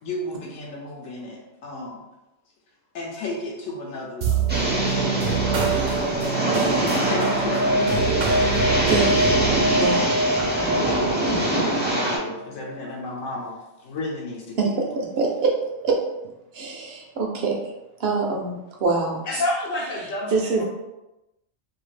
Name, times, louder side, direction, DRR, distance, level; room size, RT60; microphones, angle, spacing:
voice 1, 0.0-2.0 2.9-4.4 7.0-8.4 9.7-10.3 10.8-14.7, left 2 dB, 85° left, -2 dB, 1.0 m, -34 dB
sound 1, 4.2-12.9, right 2 dB, 85° right, 1.0 m, -25 dB
sound 2, 4.5-12.2, right 1 dB, 15° right, 0.4 m, -24 dB
voice 2, 5.5-5.9 6.5-6.8 8.9-9.1 9.7-10.1 14.6-15.5 15.8-16.0 16.5-17.6 18.0-19.2 20.3-20.6, right 4 dB, 60° right, 0 dB, 0.8 m, -24 dB
voice 3, 19.3-20.6, left 1 dB, 55° left, -5 dB, 0.5 m, -27 dB
2.7 x 2.4 x 3.2 m, 0.95 s
omnidirectional pair, 1.3 m